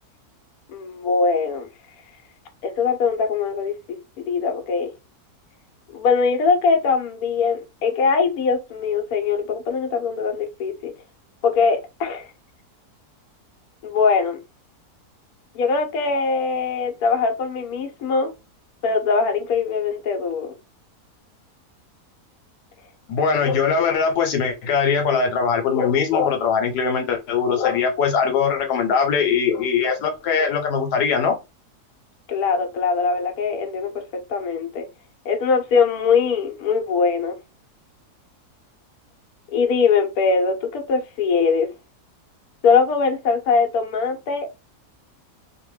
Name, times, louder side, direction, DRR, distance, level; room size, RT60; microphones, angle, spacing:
voice 1, 0.7-1.7 2.6-4.9 5.9-10.9 11.4-12.3 13.8-14.4 15.5-18.3 18.8-20.5 32.3-34.9 35.2-37.4 39.5-41.7 42.6-44.5, left 5 dB, 70° left, 1.1 m, -21 dB
voice 2, 23.1-31.4, left 6 dB, 90° left, 1.3 m, -21 dB
2.9 x 2.1 x 3.1 m
omnidirectional pair, 1.7 m